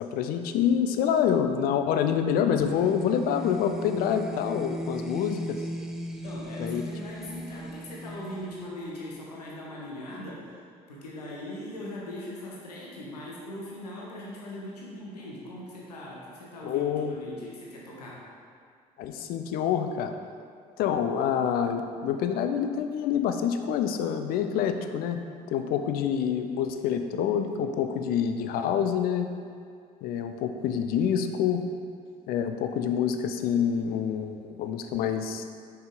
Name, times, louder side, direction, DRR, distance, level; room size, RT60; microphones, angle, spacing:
voice 1, 0.0-5.6 6.6-6.8 16.6-17.1 19.0-20.1 20.8-25.2 25.5-29.3 30.0-31.6 32.3-35.4, left 8 dB, 50° left, 7 dB, 0.5 m, -27 dB
sound 1, 2.6-9.3, equal, ahead, 0.5 m, -37 dB
voice 2, 6.2-10.5 10.9-18.2, left 1 dB, 75° left, -4 dB, 1.0 m, -40 dB
5.7 x 5.6 x 3.8 m, 2.2 s
figure-of-eight pair, 55°, 20 cm